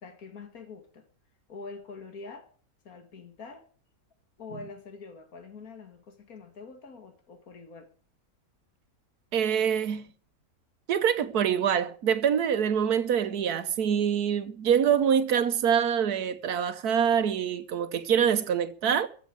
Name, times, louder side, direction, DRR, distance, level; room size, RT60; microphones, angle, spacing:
voice 1, 0.0-1.1 1.5-2.5 2.8-3.7 4.4-7.9, left 4 dB, 70° left, 2.5 m, -45 dB
voice 2, 9.3-10.1 10.9-19.1, right 8 dB, 90° right, 1.5 m, -25 dB
15.5 x 7.3 x 9.3 m
omnidirectional pair, 1.6 m